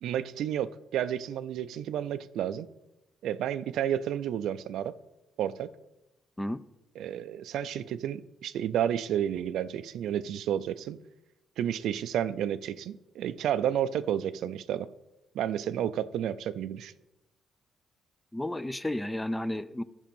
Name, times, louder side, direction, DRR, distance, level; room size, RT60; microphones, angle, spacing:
voice 1, 0.0-2.7 3.2-5.0 5.4-5.7 7.0-11.0 11.6-14.9 15.3-16.9, right 10 dB, 80° right, 0.4 m, -31 dB
voice 2, 18.3-19.8, left 1 dB, 10° left, 0.4 m, -32 dB
11.5 x 5.1 x 5.4 m
cardioid pair, 90°, 0 cm